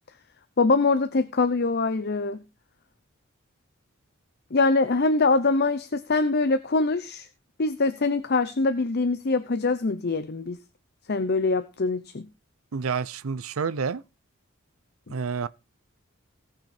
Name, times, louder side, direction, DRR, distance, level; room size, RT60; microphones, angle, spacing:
voice 1, 0.6-2.4 4.5-7.3 7.6-10.6 11.1-12.3, left 3 dB, 50° left, 0.7 m, -23 dB
voice 2, 12.7-14.0 15.1-15.5, right 5 dB, 80° right, 0.6 m, -29 dB
18.0 x 6.1 x 4.3 m
head